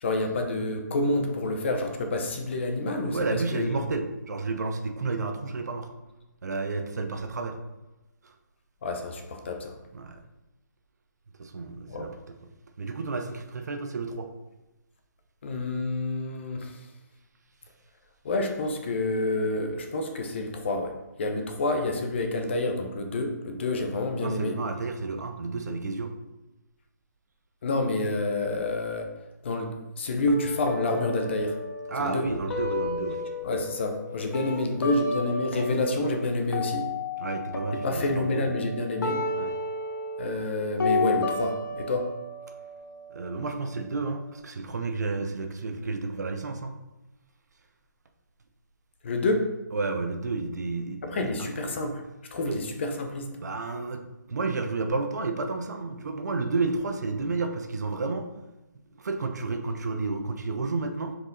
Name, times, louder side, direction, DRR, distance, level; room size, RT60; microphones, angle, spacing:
voice 1, 0.0-3.7 8.8-9.7 11.9-12.1 15.4-16.9 18.2-24.6 27.6-29.1 29.4-31.6 32.0-32.3 33.4-36.9 37.8-39.2 40.2-42.1 49.0-49.5 51.0-52.0 52.3-53.3, left 2 dB, 35° left, 5 dB, 0.8 m, -28 dB
voice 2, 3.1-5.9 6.4-7.6 8.2-8.3 9.9-10.2 11.4-12.1 12.8-14.3 24.2-26.1 31.9-33.2 37.2-38.5 39.3-39.5 43.1-46.8 49.7-51.8 52.5-52.6 53.4-54.0 54.3-58.3 59.0-61.2, right 3 dB, 60° right, 6 dB, 0.9 m, -31 dB
sound 1, 30.3-36.3 36.5-44.3, left 3 dB, 85° left, 1.3 m, -33 dB
6.2 x 4.8 x 3.9 m, 1.0 s
hypercardioid pair, 165°, 10 cm